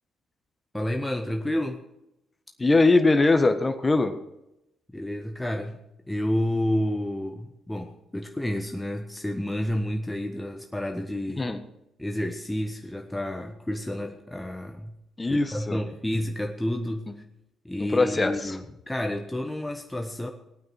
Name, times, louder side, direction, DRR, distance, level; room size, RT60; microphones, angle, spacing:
voice 1, 0.7-1.8 4.9-5.8 6.1-11.5 12.0-14.9 15.3-17.1 17.6-20.3, left 1 dB, 10° left, 4 dB, 1.2 m, -30 dB
voice 2, 2.6-4.1 11.4-11.6 15.2-15.8 17.8-18.6, left 3 dB, 25° left, 8 dB, 1.4 m, -21 dB
18.0 x 9.3 x 4.4 m, 0.88 s
figure-of-eight pair, 45°, 0 cm